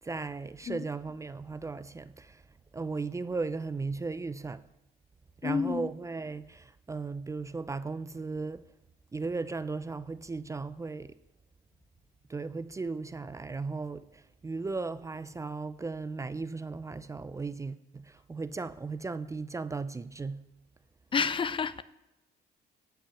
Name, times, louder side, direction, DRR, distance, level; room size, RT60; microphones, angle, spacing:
voice 1, 0.0-2.4 2.7-4.7 5.4-8.7 9.1-11.1 12.3-20.5, right 4 dB, 20° right, 0.5 m, -36 dB
voice 2, 5.4-5.9 21.1-21.8, left 6 dB, 30° left, 0.6 m, -29 dB
16.0 x 5.8 x 9.0 m
cardioid pair, 110°, 17 cm